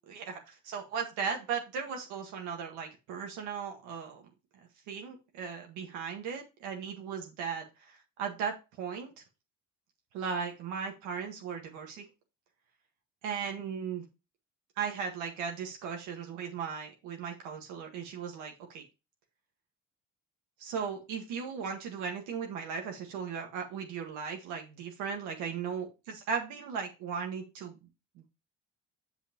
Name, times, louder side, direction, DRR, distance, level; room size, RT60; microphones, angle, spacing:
voice 1, 0.0-4.2 4.9-9.2 10.1-12.1 13.2-14.1 14.8-18.8 20.6-27.9 28.1-28.3, right 6 dB, 85° right, 2 dB, 1.7 m, -37 dB
7.9 x 5.6 x 3.0 m, 0.27 s
supercardioid pair, 85°, 29 cm